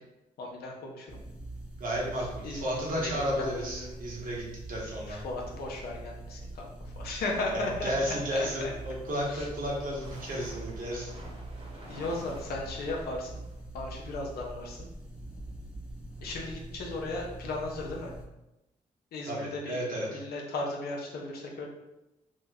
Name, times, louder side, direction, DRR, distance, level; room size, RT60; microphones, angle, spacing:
voice 1, 0.4-1.1 2.4-2.6 3.0-3.1 3.4-3.9 5.1-7.9 8.3-8.7 9.3-9.4 11.9-13.4 13.7-14.9 16.2-18.1 19.1-19.8 20.1-21.7, left 2 dB, 75° left, -1 dB, 0.7 m, -36 dB
sound 1, 1.1-18.2, right 2 dB, 5° right, 0.8 m, -44 dB
voice 2, 1.8-5.2 7.5-11.1 19.3-20.2, equal, 60° right, -3 dB, 1.1 m, -33 dB
sound 2, 8.7-13.6, right 1 dB, 40° right, 1.1 m, -50 dB
2.9 x 2.1 x 3.5 m, 0.94 s
supercardioid pair, 55°, 16 cm